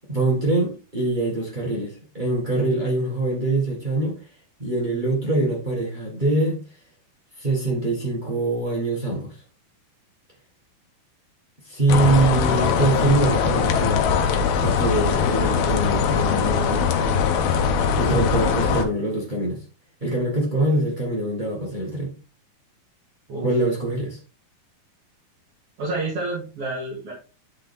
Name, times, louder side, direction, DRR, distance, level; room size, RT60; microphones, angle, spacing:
voice 1, 0.1-4.2 4.6-6.6 7.4-9.3 11.6-14.1 14.4-16.8 17.9-19.6 20.0-22.1 23.4-24.2, right 2 dB, 90° right, 0.4 m, -24 dB
sound 1, 11.9-18.8, left 6 dB, 75° left, 2.7 m, -21 dB
voice 2, 25.8-27.1, right 2 dB, 40° right, 2.9 m, -29 dB
11.0 x 4.2 x 3.6 m
omnidirectional pair, 4.4 m